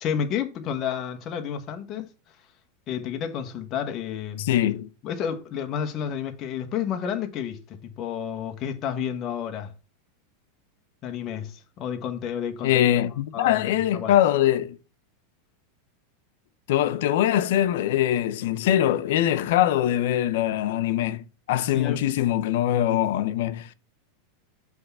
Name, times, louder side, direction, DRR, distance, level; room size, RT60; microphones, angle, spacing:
voice 1, 0.0-2.1 2.9-4.5 5.0-9.7 11.0-13.1 13.3-14.1 21.7-22.0, left 8 dB, 30° left, 1.2 m, -31 dB
voice 2, 4.4-4.9 12.6-14.8 16.7-23.7, left 12 dB, 65° left, 0.7 m, -23 dB
7.8 x 3.6 x 5.5 m
supercardioid pair, 155°, 0 cm